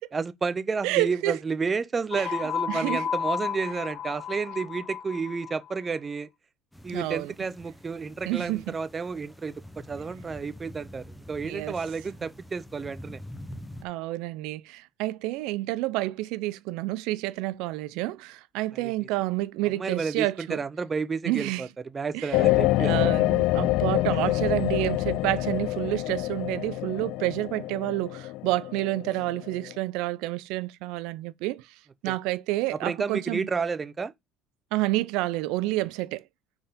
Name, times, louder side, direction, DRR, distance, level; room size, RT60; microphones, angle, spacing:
voice 1, 0.1-6.3 6.8-13.2 18.7-18.9 19.8-21.7 21.9-22.9 32.1-32.2 32.7-34.1, right 5 dB, 20° right, 0.5 m, -31 dB
voice 2, 0.8-1.4 2.1-2.3 2.7-3.1 6.9-7.3 8.3-8.7 11.4-11.7 13.8-20.6 21.2-21.7 22.1-22.4 22.8-31.7 32.0-33.5 34.7-36.2, right 18 dB, 70° right, 0.4 m, -29 dB
sound 1, 2.1-5.7, left 8 dB, 40° left, 1.5 m, -32 dB
sound 2, 6.7-13.8, equal, 5° left, 0.8 m, -45 dB
sound 3, 22.3-29.7, left 17 dB, 65° left, 0.3 m, -26 dB
5.6 x 4.4 x 5.1 m
cardioid pair, 145°, 0 cm